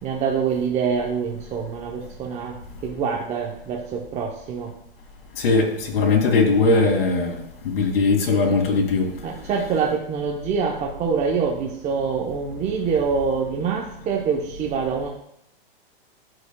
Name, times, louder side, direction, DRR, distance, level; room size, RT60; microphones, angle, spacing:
voice 1, 0.0-2.6 2.8-4.7 9.2-15.1, right 6 dB, 25° right, 0.7 m, -25 dB
voice 2, 5.4-9.1, left 3 dB, 70° left, 2.3 m, -20 dB
14.0 x 4.9 x 2.2 m
hypercardioid pair, 135°, 29 cm